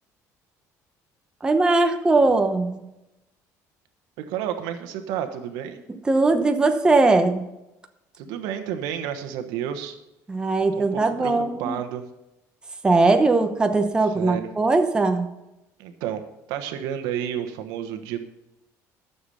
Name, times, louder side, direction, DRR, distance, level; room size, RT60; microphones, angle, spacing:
voice 1, 1.4-2.8 6.1-7.4 10.3-11.8 12.8-15.3, right 3 dB, 15° right, 5 dB, 0.9 m, -20 dB
voice 2, 4.2-5.8 8.2-10.0 10.7-12.1 14.1-14.5 15.8-16.2 16.5-18.2, right 9 dB, 90° right, 8 dB, 1.2 m, -31 dB
13.5 x 7.0 x 5.6 m, 0.93 s
cardioid pair, 145°, 7 cm